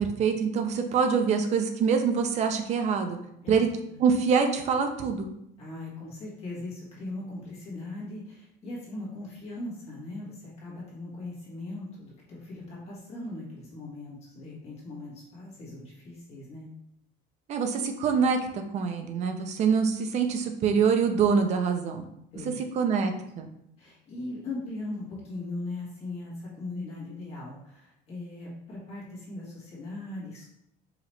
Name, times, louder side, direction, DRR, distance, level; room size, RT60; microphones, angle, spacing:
voice 1, 0.0-3.2 3.5-3.7 4.0-5.3 17.5-22.1 22.7-23.5, right 6 dB, 35° right, 6 dB, 0.5 m, -25 dB
voice 2, 5.6-16.7 22.3-22.6 23.8-30.5, left 2 dB, 35° left, -6 dB, 1.5 m, -39 dB
4.9 x 2.8 x 3.1 m, 0.77 s
cardioid pair, 170°, 19 cm